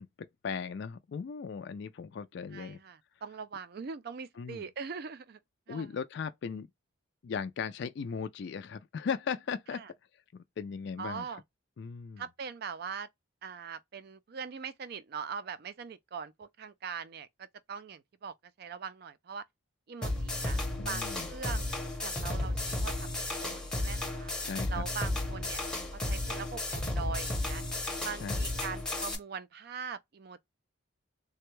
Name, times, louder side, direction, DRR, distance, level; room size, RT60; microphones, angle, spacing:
voice 1, 0.0-2.8 4.4-4.6 5.7-6.7 7.2-9.8 10.3-11.3 11.8-12.2 20.8-21.3 24.5-24.8 28.2-28.4, left 6 dB, 55° left, 0.3 m, -37 dB
voice 2, 2.5-5.4 5.7-5.9 9.7-9.9 11.0-11.4 12.2-13.1 13.4-19.4 19.9-20.6 20.8-21.7 22.0-24.3 24.7-25.6 25.9-27.6 28.0-30.5, right 6 dB, 45° right, 0.4 m, -42 dB
sound 1, 20.0-29.2, left 1 dB, 5° left, 0.7 m, -33 dB
3.4 x 2.1 x 3.0 m
head